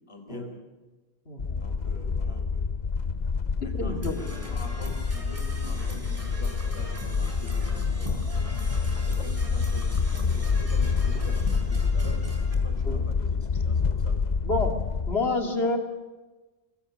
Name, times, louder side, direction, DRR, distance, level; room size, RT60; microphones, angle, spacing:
voice 1, 0.1-0.5 1.6-2.6 3.6-8.2 9.0-14.2, left 1 dB, 30° left, 3 dB, 4.6 m, -44 dB
voice 2, 1.3-1.7 3.7-4.2 12.8-13.1 14.4-14.8 15.1-15.8, left 2 dB, 80° left, 3 dB, 2.6 m, -28 dB
sound 1, 1.4-15.1, left 5 dB, 45° left, 0.9 m, -27 dB
Percussion / Brass instrument, 4.0-12.5, right 1 dB, 35° right, 4.0 m, -42 dB
24.0 x 22.0 x 6.3 m, 1.2 s
omnidirectional pair, 1.0 m